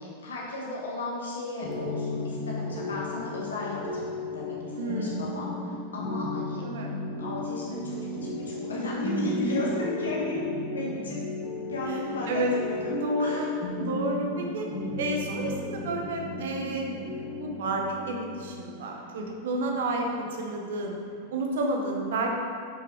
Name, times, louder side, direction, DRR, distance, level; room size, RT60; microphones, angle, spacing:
voice 1, 0.0-4.5 4.9-5.5 5.9-6.6 7.2-10.4 10.7-11.2 11.7-13.5, left 2 dB, 70° left, -4 dB, 1.2 m, -34 dB
sound 1, 1.6-21.2, left 2 dB, 40° left, 1.4 m, -34 dB
voice 2, 4.8-5.2 6.6-6.9 11.9-12.0 12.3-12.5 12.9-13.5 13.8-14.7 15.0-21.0 21.3-22.4, right 2 dB, 60° right, 1 dB, 0.9 m, -30 dB
6.8 x 5.9 x 3.5 m, 2.3 s
figure-of-eight pair, 90°, 0 cm